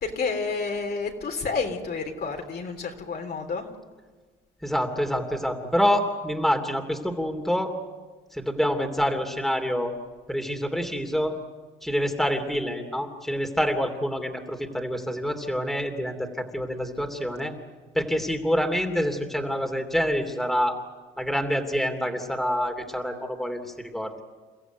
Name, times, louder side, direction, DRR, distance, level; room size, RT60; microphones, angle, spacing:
voice 1, 0.0-3.7, left 4 dB, 55° left, 3 dB, 3.4 m, -30 dB
voice 2, 4.6-7.7 8.3-9.9 10.3-11.4 11.8-17.5 17.9-20.8 21.2-24.2, equal, ahead, 3 dB, 2.9 m, -27 dB
29.5 x 15.0 x 9.4 m, 1.4 s
cardioid pair, 90°, 20 cm